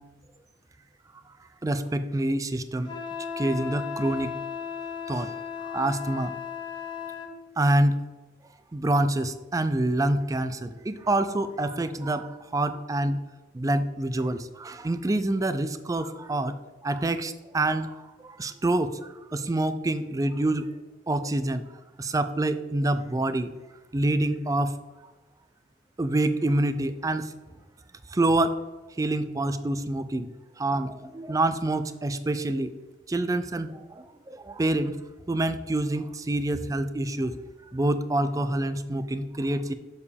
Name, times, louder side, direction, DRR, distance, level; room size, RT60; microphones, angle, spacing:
voice 1, 1.6-2.9 3.4-4.3 5.1-5.3 5.6-6.3 7.6-8.0 8.7-13.2 13.5-16.6 16.8-20.7 21.1-21.6 22.0-23.5 23.9-24.7 26.0-27.3 28.1-28.6 29.0-30.3 30.6-32.7 33.1-35.0 35.3-37.4 37.7-39.7, right 1 dB, 20° right, 11 dB, 0.4 m, -26 dB
Wind instrument woodwind instrument, 2.9-7.3, left 6 dB, 25° left, 1.1 m, -35 dB
7.0 x 6.7 x 3.4 m, 1.2 s
head